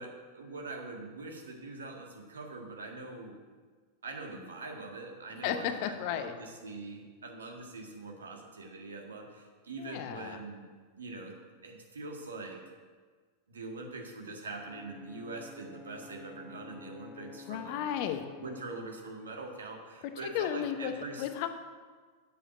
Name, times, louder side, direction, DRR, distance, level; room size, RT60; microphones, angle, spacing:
voice 1, 0.0-3.4 4.0-10.7 11.0-11.4 11.6-12.6 13.5-17.8 18.4-21.3, right 3 dB, 70° right, 2 dB, 1.7 m, -43 dB
voice 2, 5.4-6.3 9.8-10.4 17.5-18.2 20.2-20.9 21.2-21.5, left 10 dB, 45° left, 8 dB, 0.9 m, -33 dB
Brass instrument, 14.6-18.8, left 3 dB, 5° left, 0.6 m, -50 dB
8.0 x 7.6 x 7.7 m, 1.5 s
figure-of-eight pair, 90°, 0 cm